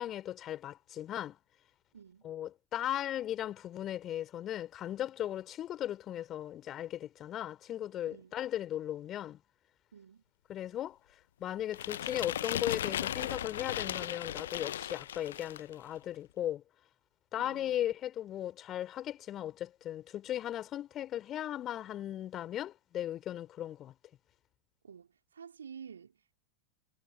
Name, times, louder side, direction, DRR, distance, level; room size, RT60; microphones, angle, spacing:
voice 1, 0.0-1.4 2.2-9.4 10.5-11.0 11.4-16.6 17.3-23.9, left 12 dB, 30° left, 4.2 m, -37 dB
voice 2, 1.9-2.3 8.1-8.4 9.9-10.2 17.4-17.9 24.8-26.4, right 7 dB, 70° right, 3.7 m, -51 dB
sound 1, 11.7-15.7, left 11 dB, 60° left, 1.2 m, -36 dB
figure-of-eight pair, 90°, 0 cm